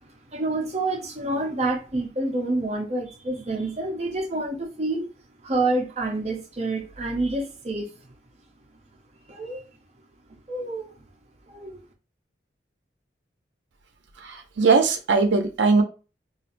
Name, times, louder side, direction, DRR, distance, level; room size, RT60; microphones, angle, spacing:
voice 1, 0.3-5.1 5.4-7.9 9.3-9.6 10.5-10.9 11.5-11.8, right 2 dB, 35° right, 0.6 m, -28 dB
voice 2, 14.2-15.8, right 4 dB, 85° right, 0.6 m, -20 dB
4.3 x 2.4 x 2.5 m
head